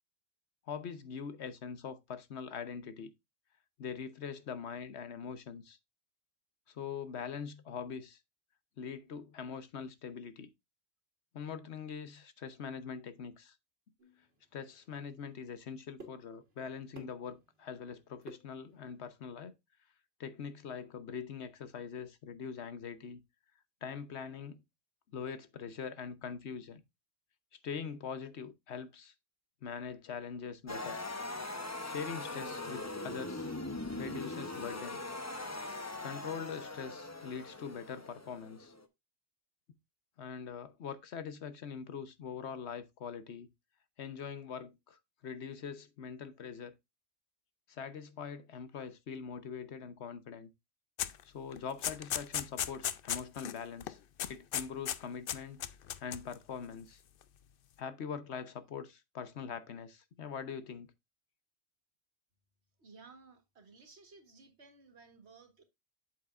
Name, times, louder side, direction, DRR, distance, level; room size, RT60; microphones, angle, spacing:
voice 1, 0.7-3.1 3.8-5.8 6.7-8.2 8.8-10.5 11.3-13.6 14.5-19.5 20.2-23.2 23.8-24.6 25.1-26.8 27.6-29.1 29.6-31.0 31.8-33.5 34.0-35.0 36.0-38.7 40.2-43.5 44.0-46.7 47.7-50.5 51.2-54.0 54.3-55.6 56.0-57.0 57.8-60.9, left 6 dB, 85° left, 1.2 m, -43 dB
sound 1, 14.0-19.1, right 1 dB, 65° right, 1.7 m, -57 dB
sound 2, 30.7-38.8, left 2 dB, 15° left, 0.7 m, -41 dB
sound 3, 51.0-51.2 51.5-53.6 53.8-53.9 54.2-55.0 55.3-56.3, left 10 dB, 65° left, 0.7 m, -36 dB
voice 2, 62.8-65.6, right 4 dB, 85° right, 1.8 m, -57 dB
8.4 x 7.3 x 2.5 m
omnidirectional pair, 1.1 m